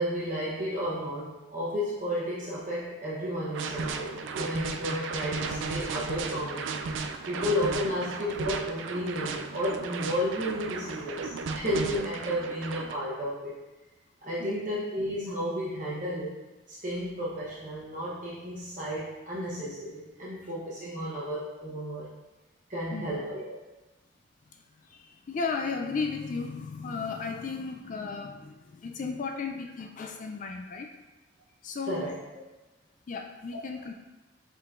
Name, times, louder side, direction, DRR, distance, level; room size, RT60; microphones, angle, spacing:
voice 1, 0.0-6.7 7.3-13.5 14.2-16.4 16.7-22.1 22.7-23.6 31.9-32.2, equal, 45° right, -8 dB, 0.9 m, -32 dB
sound 1, 3.5-12.9, right 4 dB, 85° right, 0.4 m, -35 dB
voice 2, 24.9-30.9 31.6-32.1 33.1-33.9, left 4 dB, 40° left, 4 dB, 0.3 m, -35 dB
5.4 x 3.8 x 2.5 m, 1.1 s
head